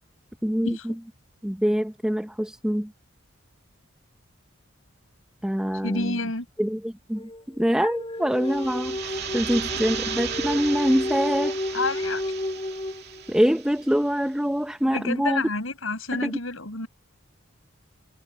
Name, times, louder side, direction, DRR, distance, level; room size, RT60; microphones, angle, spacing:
voice 1, 0.4-0.9 1.4-2.9 5.4-6.2 6.6-11.6 13.3-15.4 16.1-16.3, equal, 5° right, 0.6 m, -25 dB
voice 2, 5.8-6.5 11.7-12.2 14.9-16.9, left 3 dB, 80° left, 5.9 m, -29 dB
sound 1, 7.2-13.5, left 1 dB, 30° left, 2.5 m, -32 dB
sound 2, 8.3-14.0, right 8 dB, 55° right, 2.4 m, -35 dB
head